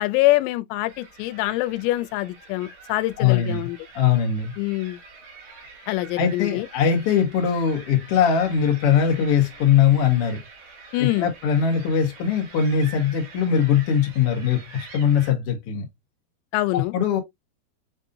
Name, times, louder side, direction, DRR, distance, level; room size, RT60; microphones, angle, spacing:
voice 1, 0.0-3.8 4.6-5.0 5.9-6.7 10.9-11.3 16.5-16.9, left 18 dB, 90° left, 2.8 m, -24 dB
sound 1, 0.8-15.3, right 4 dB, 70° right, 3.7 m, -46 dB
voice 2, 3.2-3.6 3.9-4.5 6.2-10.4 11.0-15.9 16.7-17.2, left 7 dB, 70° left, 1.4 m, -21 dB
7.2 x 2.7 x 2.6 m
omnidirectional pair, 4.9 m